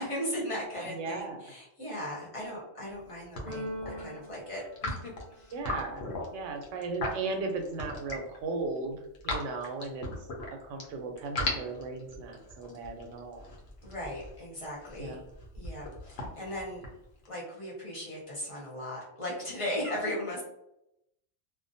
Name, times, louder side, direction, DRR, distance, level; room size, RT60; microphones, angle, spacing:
voice 1, 0.0-5.5 13.8-15.2 15.5-16.8 17.3-20.4, equal, 30° left, -5 dB, 0.8 m, -37 dB
voice 2, 0.9-1.4 5.5-6.0 6.3-9.0 9.2-10.1 10.6-13.5 15.0-15.2, right 3 dB, 80° right, 4 dB, 0.9 m, -36 dB
sound 1, 2.9-3.1 3.4-4.0 4.6-8.4 8.8-10.8 11.2-17.3, left 2 dB, 65° left, 0.8 m, -37 dB
Keyboard (musical), 3.5-5.6, equal, 50° right, 0.6 m, -42 dB
2.4 x 2.1 x 2.6 m, 0.83 s
omnidirectional pair, 1.3 m